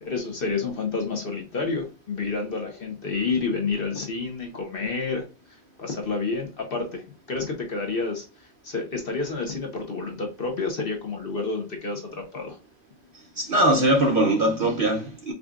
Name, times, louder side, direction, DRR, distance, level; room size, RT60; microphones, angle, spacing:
voice 1, 0.0-5.2 5.8-12.6, left 4 dB, 50° left, 0.8 m, -29 dB
voice 2, 13.4-15.3, right 1 dB, 50° right, 0.7 m, -21 dB
5.0 x 2.3 x 2.3 m
omnidirectional pair, 1.4 m